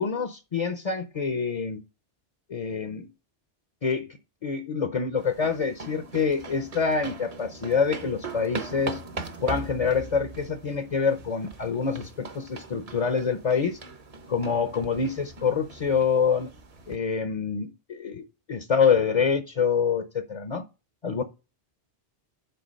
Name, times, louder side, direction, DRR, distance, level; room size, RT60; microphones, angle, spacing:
voice 1, 0.0-1.8 2.5-3.1 3.8-4.1 4.4-9.0 9.4-13.8 14.3-16.5 16.9-18.2 18.5-20.6 21.0-21.2, left 6 dB, 40° left, 0.7 m, -26 dB
sound 1, 5.2-17.0, right 4 dB, 35° right, 0.9 m, -40 dB
6.9 x 4.7 x 6.2 m
omnidirectional pair, 1.2 m